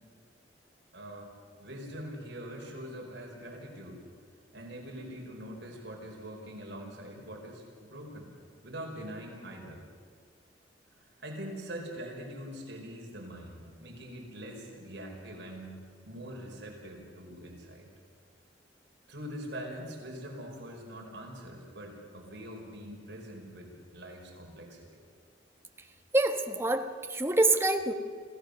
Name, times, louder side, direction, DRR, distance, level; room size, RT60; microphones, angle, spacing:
voice 1, 0.9-1.3 1.6-4.0 4.5-8.3 8.6-9.8 11.0-15.7 16.0-17.9 19.1-25.0, equal, 65° right, 0 dB, 5.1 m, -43 dB
voice 2, 26.1-27.9, right 2 dB, 15° right, 5 dB, 1.3 m, -26 dB
27.0 x 16.0 x 6.7 m, 2.1 s
head